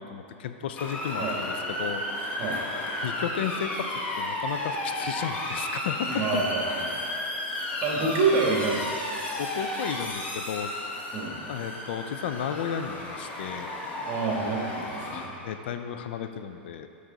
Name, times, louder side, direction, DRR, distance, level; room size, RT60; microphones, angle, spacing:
voice 1, 0.0-2.5 3.0-3.9 4.2-6.4 7.5-7.7 9.4-10.7 11.1-11.2 11.5-13.7 15.1-16.9, left 8 dB, 70° left, 9 dB, 0.4 m, -34 dB
Motor vehicle (road) / Siren, 0.8-15.3, left 1 dB, 25° left, 1.2 m, -33 dB
voice 2, 6.1-7.0 7.8-9.0 11.1-11.4 14.0-15.3, right 4 dB, 40° right, -1 dB, 1.5 m, -27 dB
7.9 x 5.4 x 3.9 m, 2.6 s
hypercardioid pair, 125°, 6 cm